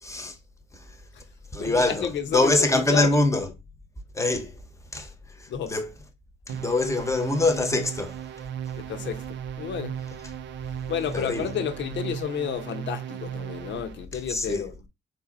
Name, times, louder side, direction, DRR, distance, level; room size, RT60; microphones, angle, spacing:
voice 1, 0.0-0.4 0.7-1.0 1.5-3.5 4.1-4.6 4.9-5.9 6.5-8.2 11.1-11.5 14.3-14.7, left 2 dB, 15° left, 1.0 m, -24 dB
voice 2, 1.6-3.1 5.5-5.8 8.7-9.2 9.6-10.0 10.9-14.7, left 8 dB, 65° left, 0.9 m, -31 dB
sound 1, 6.5-14.0, right 10 dB, 65° right, 0.5 m, -36 dB
3.8 x 2.8 x 3.9 m
cardioid pair, 90°, 20 cm